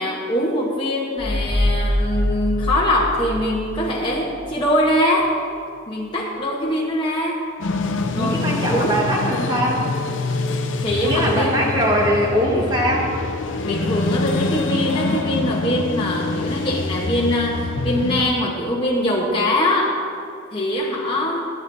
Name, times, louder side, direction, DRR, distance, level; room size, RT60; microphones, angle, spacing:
voice 1, 0.0-5.4 5.9-7.5 8.1-9.0 10.8-11.7 13.6-20.0 20.5-21.4, left 1 dB, 25° left, -4 dB, 1.0 m, -22 dB
sound 1, 1.2-4.5, left 1 dB, 65° right, 2.6 m, -24 dB
sound 2, 7.6-18.2, left 3 dB, 70° left, 0.7 m, -25 dB
voice 2, 8.1-9.9 11.0-13.1, equal, 20° right, -2 dB, 1.5 m, -21 dB
14.0 x 10.5 x 2.7 m, 2.3 s
head